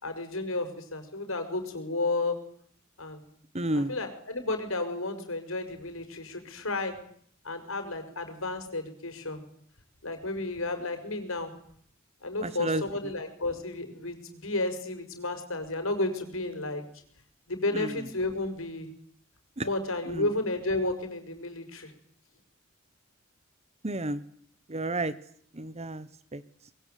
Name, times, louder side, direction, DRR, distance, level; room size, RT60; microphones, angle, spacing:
voice 1, 0.0-2.4 3.0-3.2 3.7-6.9 7.4-9.4 10.0-11.5 12.2-16.8 17.5-18.9 19.6-21.9, left 2 dB, 75° left, 7 dB, 6.2 m, -32 dB
voice 2, 3.5-3.9 12.4-12.8 17.7-18.1 19.6-19.7 20.1-20.3 23.8-24.2 24.7-25.1 25.5-26.4, right 1 dB, 30° right, 15 dB, 1.2 m, -31 dB
23.5 x 22.5 x 9.4 m, 0.62 s
head